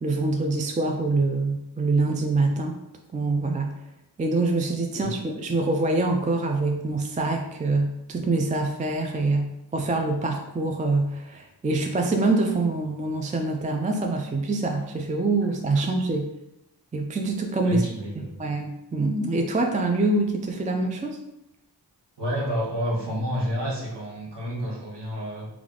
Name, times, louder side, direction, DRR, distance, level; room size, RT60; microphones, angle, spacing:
voice 1, 0.0-2.8 3.1-3.8 4.2-16.3 16.9-17.9 18.4-21.2, right 2 dB, 20° right, 3 dB, 0.3 m, -25 dB
voice 2, 17.6-18.4 22.2-25.5, equal, 85° right, -3 dB, 1.1 m, -29 dB
3.5 x 2.4 x 3.6 m, 0.89 s
wide cardioid pair, 65°, 41 cm